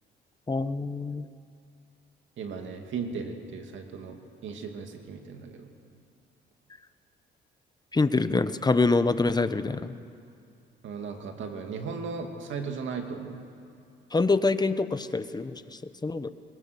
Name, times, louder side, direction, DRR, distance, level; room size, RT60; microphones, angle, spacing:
voice 1, 0.5-1.3 7.9-9.9 14.1-15.6 16.0-16.3, left 3 dB, 20° left, 12 dB, 0.9 m, -25 dB
voice 2, 2.4-4.2 4.4-5.7 10.8-13.4, right 5 dB, 75° right, 4 dB, 2.5 m, -36 dB
23.0 x 22.0 x 6.9 m, 2.4 s
cardioid pair, 90°, 20 cm